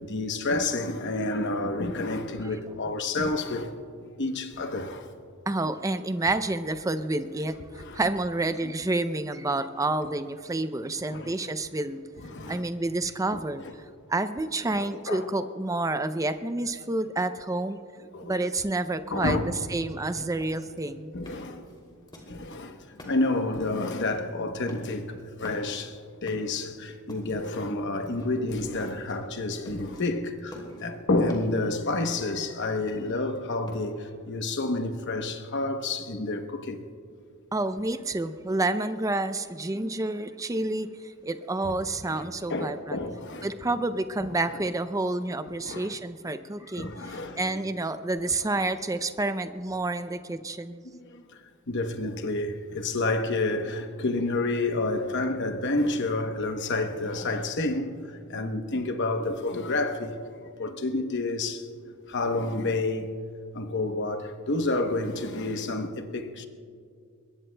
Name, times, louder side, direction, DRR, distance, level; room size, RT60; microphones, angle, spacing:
voice 1, 0.0-3.7 4.2-5.1 7.8-8.0 8.6-8.7 11.1-11.4 12.2-12.6 13.3-13.7 14.7-15.5 18.1-18.4 19.1-19.5 20.1-20.3 21.1-21.7 22.3-36.8 39.8-39.9 41.6-41.7 42.1-43.5 44.2-44.3 45.6-45.9 46.8-47.4 50.8-51.2 51.7-60.2 60.6-61.7 62.1-63.1 63.5-66.4, left 2 dB, 55° left, 0.9 m, -29 dB
voice 2, 5.5-7.6 7.9-12.0 12.5-13.6 14.1-17.8 18.2-21.1 37.5-43.0 43.4-50.8, right 2 dB, 15° right, 0.5 m, -29 dB
sound 1, 20.3-22.6 22.9-23.5 23.8-24.2 24.5-25.1 25.4-25.9 26.3-27.5 27.9-28.5 28.8-29.2 29.5-30.0 30.4-31.7 32.0-33.8, left 1 dB, 20° left, 2.8 m, -47 dB
23.0 x 21.0 x 2.2 m
head